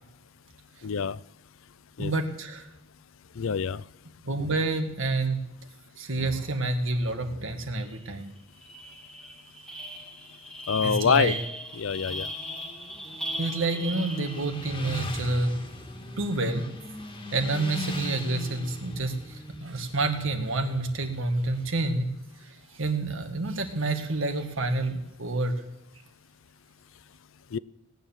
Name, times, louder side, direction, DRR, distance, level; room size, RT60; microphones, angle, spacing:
voice 1, 0.8-1.2 2.0-2.1 3.4-3.8 10.7-11.3 11.8-12.3 27.5-27.6, left 6 dB, 70° left, 20 dB, 0.5 m, -25 dB
voice 2, 2.0-2.7 4.2-5.4 6.0-8.3 10.8-11.4 13.4-15.5 16.2-16.7 17.3-22.1 22.4-25.5, right 2 dB, 70° right, 6 dB, 1.9 m, -28 dB
sound 1, 7.9-8.1 8.4-14.8, equal, 5° left, 1.4 m, -38 dB
Motorcycle, 12.1-21.8, equal, 25° left, 1.8 m, -39 dB
18.5 x 9.6 x 7.2 m, 0.87 s
head